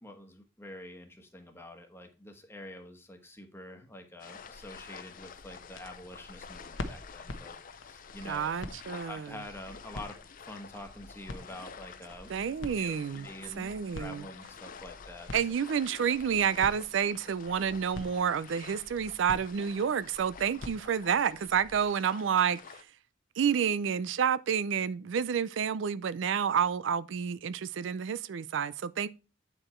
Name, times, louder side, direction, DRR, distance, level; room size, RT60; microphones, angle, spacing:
voice 1, 0.0-8.7 9.0-12.3 12.8-15.7, left 1 dB, 15° left, 1.2 m, -47 dB
sound 1, 4.2-22.8, left 6 dB, 45° left, 0.6 m, -50 dB
sound 2, 4.4-21.9, left 2 dB, 90° left, 1.0 m, -47 dB
voice 2, 8.3-9.3 12.3-13.3 13.6-14.2 15.3-22.6 23.4-29.1, right 7 dB, 70° right, 0.4 m, -29 dB
8.6 x 4.9 x 4.4 m
head